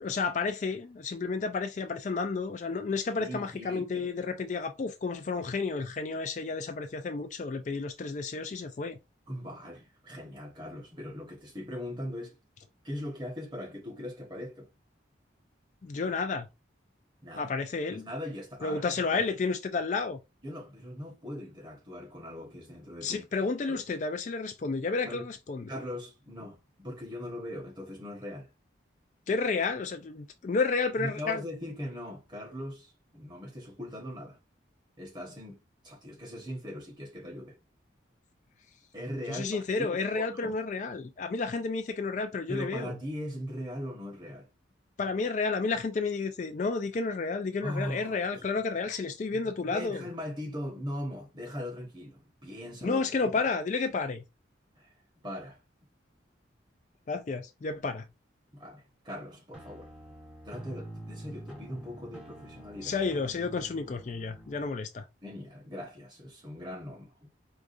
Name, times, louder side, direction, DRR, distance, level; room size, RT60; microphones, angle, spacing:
voice 1, 0.0-9.0 15.8-16.5 17.4-18.0 18.6-20.2 23.0-25.7 29.3-31.4 39.3-42.9 45.0-50.0 52.8-54.2 57.1-58.0 62.8-65.0, left 4 dB, 40° left, 0.3 m, -31 dB
voice 2, 3.2-4.1 9.3-12.4 12.8-14.7 17.2-17.5 17.9-19.0 20.4-23.3 23.7-23.8 25.0-25.2 25.7-28.5 31.0-34.4 35.0-35.6 35.8-37.6 38.9-40.5 42.5-44.5 47.6-48.6 49.4-53.0 54.8-55.6 58.5-59.9 60.4-62.9 65.2-67.3, equal, 25° right, 1.2 m, -40 dB
sound 1, 59.5-64.7, right 1 dB, 5° right, 1.0 m, -46 dB
4.8 x 2.4 x 2.6 m
head